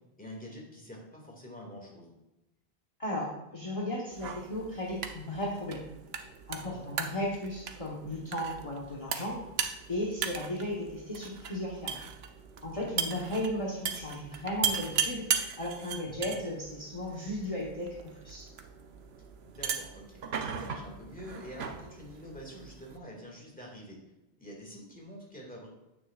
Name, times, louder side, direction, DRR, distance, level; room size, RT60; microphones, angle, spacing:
voice 1, 0.2-2.1 6.5-7.0 12.7-13.1 16.0-16.3 19.4-24.0 24.4-25.7, equal, 10° left, -1 dB, 2.1 m, -47 dB
voice 2, 3.0-5.8 6.5-9.4 9.9-12.0 12.6-15.3 15.6-18.4, left 1 dB, 35° left, -4 dB, 1.2 m, -35 dB
sound 1, 4.1-23.0, right 7 dB, 75° right, 1.0 m, -38 dB
9.5 x 8.8 x 2.4 m, 0.98 s
omnidirectional pair, 1.1 m